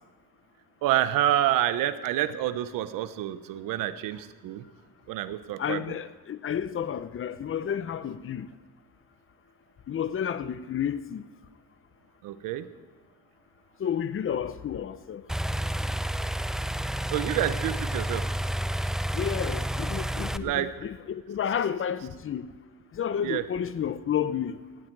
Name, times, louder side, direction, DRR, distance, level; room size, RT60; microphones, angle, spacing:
voice 1, 0.8-4.7 5.1-5.9 12.2-12.7 17.1-18.2 20.4-20.7 23.2-23.4, right 12 dB, 80° right, 1.1 m, -28 dB
voice 2, 5.6-8.5 9.9-11.2 13.8-15.2 19.1-22.5 22.9-24.6, left 8 dB, 40° left, 0.9 m, -31 dB
sound 1, 15.3-20.4, right 1 dB, ahead, 0.5 m, -30 dB
17.0 x 16.5 x 4.8 m
cardioid pair, 100°, 32 cm